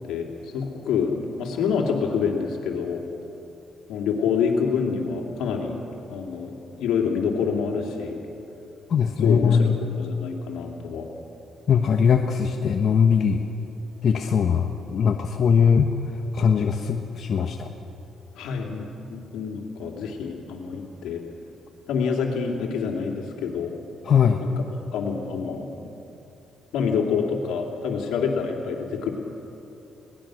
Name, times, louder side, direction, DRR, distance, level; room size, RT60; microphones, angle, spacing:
voice 1, 0.1-3.0 3.9-5.8 6.1-8.2 9.2-11.1 18.4-21.2 21.9-23.7 24.4-24.7 24.9-25.7 26.7-29.1, left 6 dB, 85° left, 1 dB, 2.9 m, -27 dB
voice 2, 8.9-9.7 11.7-13.4 14.0-15.9 16.3-17.7 24.1-24.4, left 6 dB, 60° left, 4 dB, 1.1 m, -20 dB
23.0 x 19.0 x 6.4 m, 2.9 s
cardioid pair, 90°, 0 cm